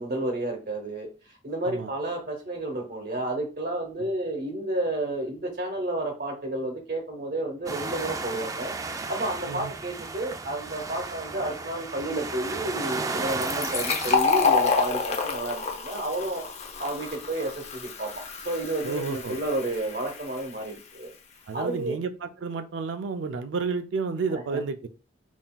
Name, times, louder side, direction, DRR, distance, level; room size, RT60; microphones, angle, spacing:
voice 1, 0.0-16.4 16.8-18.1 18.4-21.1 21.5-22.0 24.3-24.6, right 1 dB, 50° right, 1 dB, 0.9 m, -31 dB
sound 1, 7.7-14.2, right 3 dB, 20° right, 0.3 m, -34 dB
Fill (with liquid), 13.3-20.7, left 5 dB, 35° left, 0.6 m, -28 dB
voice 2, 18.8-19.4 21.5-24.9, right 4 dB, 85° right, 9 dB, 0.4 m, -31 dB
5.6 x 2.6 x 2.3 m, 0.34 s
head